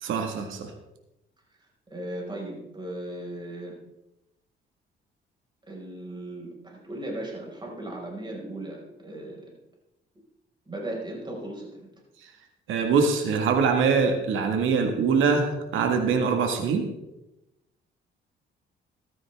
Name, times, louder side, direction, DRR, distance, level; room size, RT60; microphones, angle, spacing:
voice 1, 0.0-0.7 12.7-16.9, right 5 dB, 80° right, 4 dB, 1.8 m, -23 dB
voice 2, 1.9-3.8 5.7-9.5 10.7-11.9, right 1 dB, 25° right, -1 dB, 5.3 m, -37 dB
14.5 x 12.5 x 3.5 m, 0.92 s
cardioid pair, 90°, 20 cm